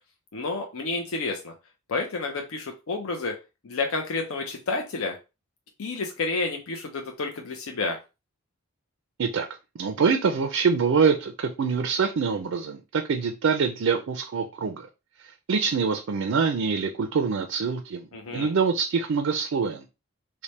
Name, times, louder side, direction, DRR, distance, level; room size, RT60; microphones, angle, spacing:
voice 1, 0.3-1.5 1.9-3.3 3.6-5.2 5.8-8.0 18.1-18.5, left 3 dB, 70° left, 0.6 m, -30 dB
voice 2, 9.8-14.9 15.5-19.8, right 5 dB, 65° right, 0.4 m, -25 dB
3.3 x 2.1 x 4.0 m
head